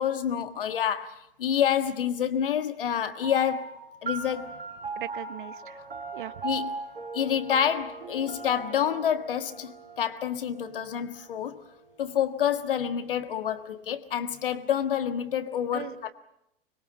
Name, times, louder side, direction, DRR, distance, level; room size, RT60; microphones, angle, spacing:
voice 1, 0.0-3.7 4.0-4.6 6.4-6.7 7.1-11.6 12.0-16.1, left 9 dB, 65° left, 1.7 m, -28 dB
sound 1, 3.2-12.1, right 4 dB, 75° right, 4.0 m, -39 dB
voice 2, 4.9-5.8 6.1-6.3 15.7-16.1, right 12 dB, 55° right, 1.4 m, -39 dB
25.0 x 21.5 x 7.4 m
figure-of-eight pair, 95°, 30 cm